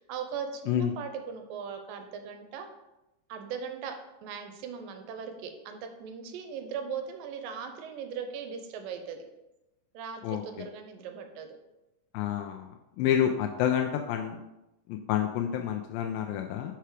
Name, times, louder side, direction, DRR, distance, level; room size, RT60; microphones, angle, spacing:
voice 1, 0.0-2.7 3.3-9.2 9.9-11.6, right 6 dB, 90° right, 6 dB, 2.4 m, -39 dB
voice 2, 12.1-12.7 13.0-14.4 14.9-16.7, left 9 dB, 90° left, 3 dB, 2.3 m, -28 dB
5.9 x 5.7 x 4.8 m, 0.95 s
omnidirectional pair, 4.0 m